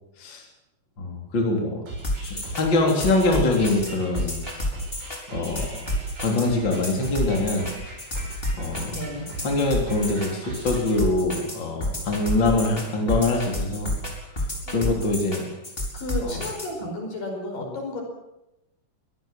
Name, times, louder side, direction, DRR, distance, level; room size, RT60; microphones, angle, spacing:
voice 1, 1.0-1.8 2.2-4.4 5.3-5.8 6.2-7.7 8.6-8.9 9.4-13.9 14.7-15.4 16.2-16.4, left 2 dB, 30° left, 1 dB, 4.0 m, -24 dB
sound 1, 1.9-11.0, right 2 dB, 90° right, 8.7 m, -38 dB
sound 2, 2.0-16.7, left 1 dB, 15° left, 4.4 m, -30 dB
voice 2, 8.9-9.3 14.6-15.0 15.9-18.0, left 1 dB, 70° left, 2 dB, 6.8 m, -33 dB
23.0 x 17.5 x 7.6 m, 0.89 s
omnidirectional pair, 4.1 m